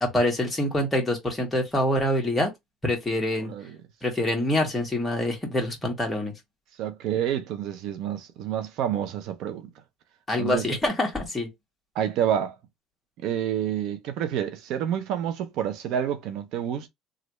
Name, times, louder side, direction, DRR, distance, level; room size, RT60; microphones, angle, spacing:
voice 1, 0.0-2.5 2.8-3.5 4.0-6.3 10.3-11.5, left 1 dB, 10° left, 1.6 m, -25 dB
voice 2, 6.8-9.7 10.4-10.7 11.9-12.6 13.2-16.9, right 9 dB, 65° right, 0.6 m, -28 dB
3.2 x 2.5 x 3.1 m
cardioid pair, 120°, 0 cm